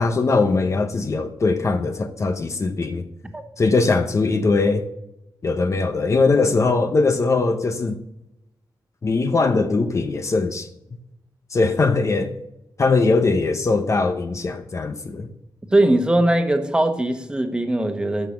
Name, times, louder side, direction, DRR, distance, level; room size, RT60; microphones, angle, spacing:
voice 1, 0.0-3.1 3.6-4.9 5.4-8.0 9.0-10.7 11.5-12.3 12.8-15.3, left 3 dB, 35° left, 0.8 m, -20 dB
voice 2, 15.7-18.3, right 1 dB, 10° right, 1.3 m, -20 dB
13.5 x 6.0 x 7.0 m
wide cardioid pair, 155°, 8 cm